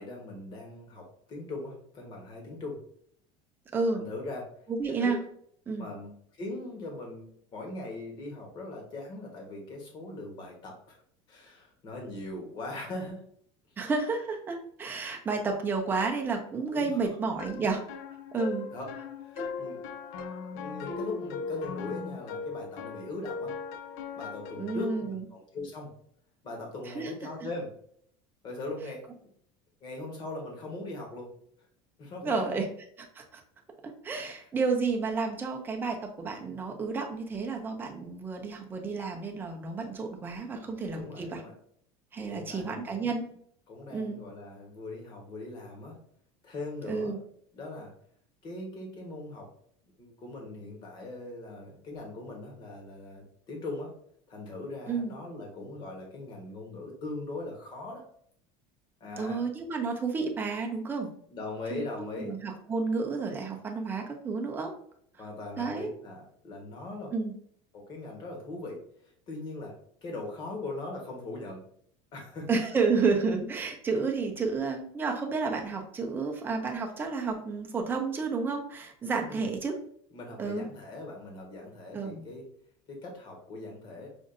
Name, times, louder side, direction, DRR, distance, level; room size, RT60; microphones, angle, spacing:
voice 1, 0.0-2.8 3.9-4.5 4.9-5.1 5.8-11.0 11.3-13.2 16.7-17.0 18.7-18.9 19.2-19.8 20.5-23.5 24.2-25.9 26.4-27.7 28.4-29.0 29.8-31.3 32.0-32.6 40.6-41.5 42.2-43.1 43.7-46.0 46.4-47.3 47.5-47.9 48.4-49.5 50.0-53.9 54.3-58.0 59.0-59.4 61.3-62.3 65.2-67.1 67.7-68.8 69.3-69.7 70.0-71.6 72.1-72.5 79.3-79.5 80.1-82.4 82.9-84.1, left 2 dB, 30° left, 0 dB, 1.1 m, -40 dB
voice 2, 3.7-4.0 4.7-5.2 5.7-5.9 13.8-17.8 18.3-18.7 19.3-19.5 24.6-25.2 26.9-27.1 32.2-32.7 33.1-33.4 33.8-41.4 42.1-43.3 43.9-44.2 46.8-47.2 54.9-55.1 59.2-61.1 61.7-64.7 65.6-65.9 67.1-67.3 72.5-79.8 80.4-80.6 81.9-82.3, right 4 dB, 15° right, 2 dB, 0.5 m, -31 dB
sound 1, 17.4-25.1, left 5 dB, 60° left, 0.4 m, -39 dB
5.1 x 2.5 x 2.5 m, 0.63 s
cardioid pair, 165°, 15 cm